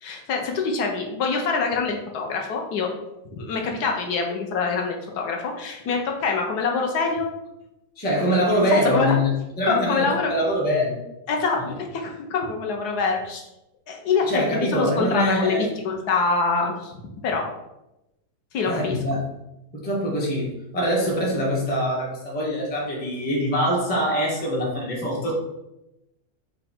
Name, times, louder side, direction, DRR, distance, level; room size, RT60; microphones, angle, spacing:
voice 1, 0.0-2.9 3.3-7.3 8.7-9.2 9.6-10.3 11.3-13.4 13.9-14.3 14.5-17.0 17.2-17.4 18.5-19.0, left 4 dB, 70° left, 2 dB, 1.1 m, -25 dB
voice 2, 8.0-11.0 14.3-15.7 18.7-19.3 19.7-25.3, equal, 10° left, -3 dB, 0.4 m, -24 dB
4.7 x 2.2 x 4.2 m, 0.91 s
omnidirectional pair, 1.9 m